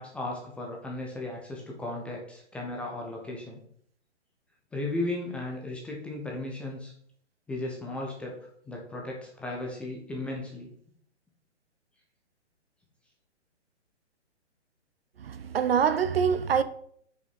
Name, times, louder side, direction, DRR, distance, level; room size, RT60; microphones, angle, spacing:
voice 1, 0.0-3.6 4.7-6.9 7.5-8.3 8.7-10.7, left 2 dB, 5° left, 0.6 m, -35 dB
voice 2, 15.2-16.6, right 7 dB, 55° right, 0.7 m, -25 dB
6.6 x 5.5 x 5.7 m
figure-of-eight pair, 135°, 35 cm